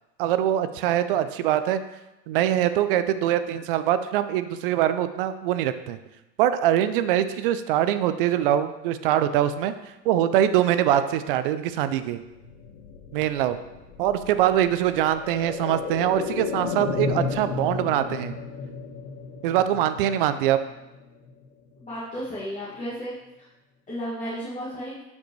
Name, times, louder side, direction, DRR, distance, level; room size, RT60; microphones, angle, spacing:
voice 1, 0.2-1.8 2.3-6.0 6.4-9.7 10.0-12.2 13.1-13.6 14.0-18.4 19.4-20.6, right 11 dB, 35° right, 11 dB, 0.4 m, -23 dB
sound 1, 12.1-21.9 22.2-22.3, left 5 dB, 65° left, 1.4 m, -34 dB
voice 2, 21.9-23.1 23.9-25.0, equal, 15° left, -9 dB, 2.2 m, -33 dB
11.5 x 5.2 x 3.2 m, 0.97 s
hypercardioid pair, 115°, 50 cm